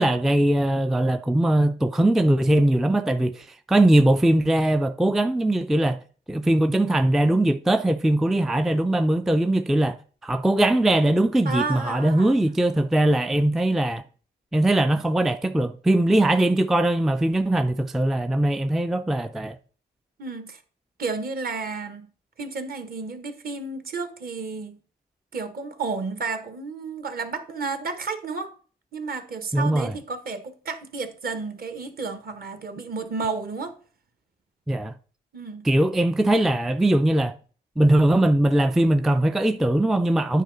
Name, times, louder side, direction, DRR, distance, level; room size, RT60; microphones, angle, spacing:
voice 1, 0.0-6.0 6.3-10.0 10.2-14.0 14.5-19.6 29.5-29.9 34.7-34.9 35.6-37.4 37.8-40.4, right 1 dB, ahead, 0.3 m, -21 dB
voice 2, 11.4-12.4 20.2-20.6 21.0-22.1 22.4-24.8 25.3-28.5 28.9-33.7 35.3-35.7, right 4 dB, 50° right, 1.3 m, -32 dB
9.1 x 4.9 x 3.9 m
cardioid pair, 90°, 20 cm